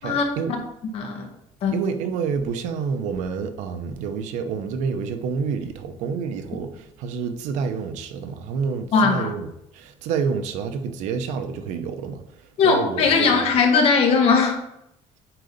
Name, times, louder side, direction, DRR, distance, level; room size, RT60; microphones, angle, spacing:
voice 1, 0.0-0.6 1.7-9.5 9.7-13.5, right 6 dB, 80° right, 0.9 m, -28 dB
voice 2, 0.9-1.3 1.6-1.7 8.9-9.3 12.6-14.6, left 5 dB, 55° left, 1.8 m, -19 dB
9.1 x 3.9 x 5.3 m
cardioid pair, 150°, 12 cm